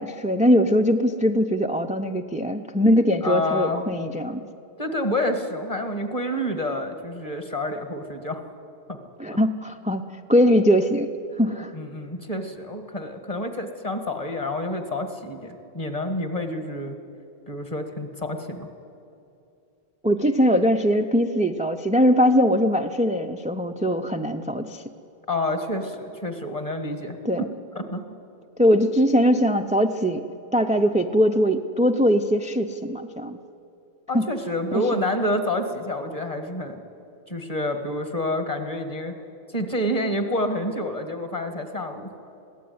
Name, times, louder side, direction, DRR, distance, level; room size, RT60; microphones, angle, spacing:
voice 1, 0.0-4.4 9.2-10.0 10.3-11.1 11.4-11.7 20.0-24.8 27.2-27.5 28.6-30.2 30.5-33.4 34.1-34.2 34.7-35.0, equal, 10° right, 6 dB, 0.4 m, -21 dB
voice 2, 3.2-3.8 4.8-8.4 8.9-9.0 11.7-17.0 17.5-18.7 25.3-27.5 27.7-28.0 34.1-36.8 37.3-39.1 39.5-42.1, left 1 dB, 35° left, 7 dB, 1.9 m, -28 dB
22.0 x 16.5 x 9.5 m, 2.6 s
omnidirectional pair, 1.1 m